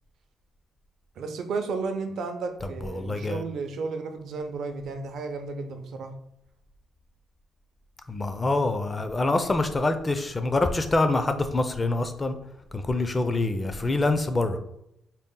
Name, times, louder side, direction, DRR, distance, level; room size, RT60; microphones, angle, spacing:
voice 1, 1.2-6.1, right 4 dB, 70° right, 0.5 m, -33 dB
voice 2, 2.8-3.4 8.1-12.3 12.7-14.6, left 2 dB, 25° left, 0.4 m, -25 dB
4.0 x 2.0 x 3.7 m
cardioid pair, 90°, 0 cm